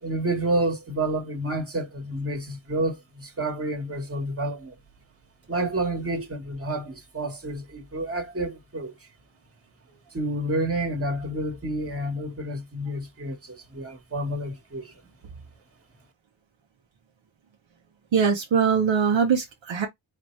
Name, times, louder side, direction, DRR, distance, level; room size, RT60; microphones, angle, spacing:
voice 1, 0.0-4.7 5.5-8.9 10.1-15.0, right 1 dB, 30° right, 1.4 m, -29 dB
voice 2, 18.1-19.9, right 6 dB, 70° right, 0.9 m, -22 dB
4.1 x 2.8 x 3.2 m
wide cardioid pair, 80°, 48 cm